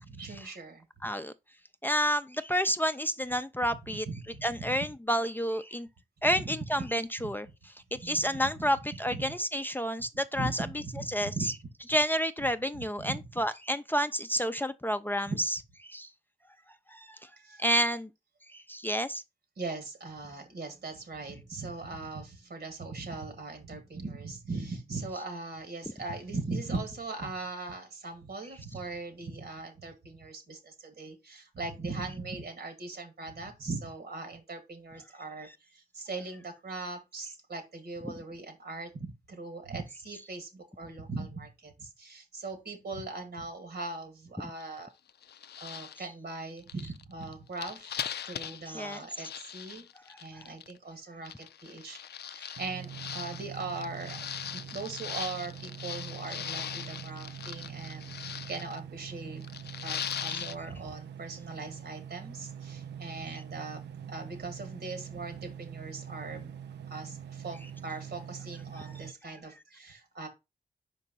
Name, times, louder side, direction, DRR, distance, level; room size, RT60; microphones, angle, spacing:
voice 1, 0.0-0.9 3.9-4.8 6.2-6.9 7.9-8.7 9.1-9.3 10.3-11.6 12.7-13.3 15.3-15.4 17.4-17.6 19.6-44.9 45.6-48.0 48.3-49.9 50.2-59.4 59.8-63.8 64.1-66.5 66.9-70.3, right 3 dB, 70° right, 1.8 m, -40 dB
voice 2, 1.0-1.3 1.8-4.1 4.4-5.9 6.2-7.5 7.9-10.7 11.1-11.5 11.9-15.6 15.8-16.1 16.9-17.2 17.6-18.1 18.5-19.2 48.7-49.0 50.4-50.5 52.4-52.5 60.3-60.4, equal, 10° left, 0.5 m, -30 dB
sound 1, 44.6-44.8 45.1-46.0 46.6-50.7 51.3-58.8 59.4-60.6, left 9 dB, 70° left, 0.4 m, -40 dB
sound 2, 52.6-69.1, right 8 dB, 90° right, 0.5 m, -44 dB
5.1 x 4.6 x 4.1 m
cardioid pair, 40°, 17 cm